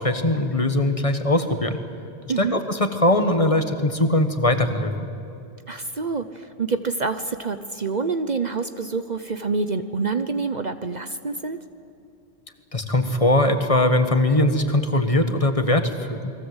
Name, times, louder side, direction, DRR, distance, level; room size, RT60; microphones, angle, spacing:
voice 1, 0.0-1.8 2.4-4.9 12.7-16.3, left 1 dB, 30° left, 7 dB, 1.6 m, -21 dB
voice 2, 2.3-2.6 5.7-11.6, right 4 dB, 45° right, 9 dB, 1.0 m, -27 dB
29.5 x 22.0 x 8.1 m, 2.7 s
omnidirectional pair, 1.1 m